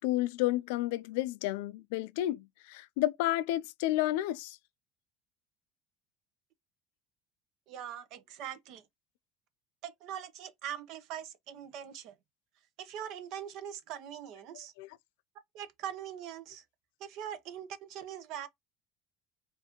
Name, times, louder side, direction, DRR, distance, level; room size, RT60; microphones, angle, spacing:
voice 1, 0.0-4.6 14.5-15.0, left 15 dB, 85° left, 0.3 m, -31 dB
voice 2, 7.7-8.8 9.8-12.2 12.8-14.7 15.5-16.6 17.0-18.5, right 9 dB, 65° right, 0.7 m, -42 dB
4.6 x 2.6 x 2.9 m
supercardioid pair, 120°, 0 cm